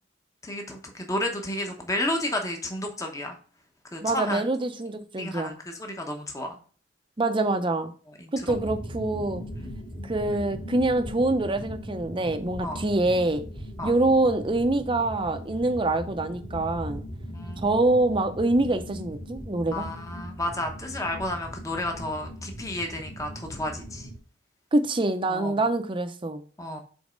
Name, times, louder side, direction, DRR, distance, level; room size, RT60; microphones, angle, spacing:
voice 1, 0.4-3.4 3.9-4.4 5.2-6.6 8.2-8.6 12.6-12.8 13.8-13.9 17.3-17.7 19.7-24.1 25.3-25.5 26.6-26.8, left 1 dB, 15° left, 0.9 m, -32 dB
voice 2, 4.0-5.6 7.2-7.9 8.3-9.5 10.0-13.4 13.8-17.0 17.6-19.9 24.7-26.4, right 2 dB, 25° right, 0.6 m, -25 dB
sound 1, 8.5-24.2, equal, 40° left, 1.6 m, -39 dB
5.3 x 4.1 x 5.1 m
head